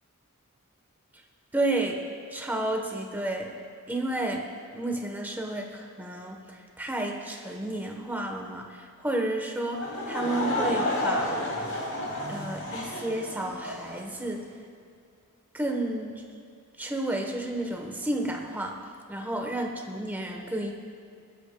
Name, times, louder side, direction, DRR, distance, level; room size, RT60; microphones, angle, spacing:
voice 1, 1.5-2.0 2.3-3.5 3.9-4.4 4.7-11.4 12.3-14.5 15.5-16.2 16.8-18.8 19.1-20.7, right 1 dB, 10° right, 1 dB, 1.0 m, -31 dB
Laughter / Crowd, 9.8-14.0, left 1 dB, 75° left, 2.8 m, -31 dB
19.0 x 11.5 x 2.2 m, 2.3 s
head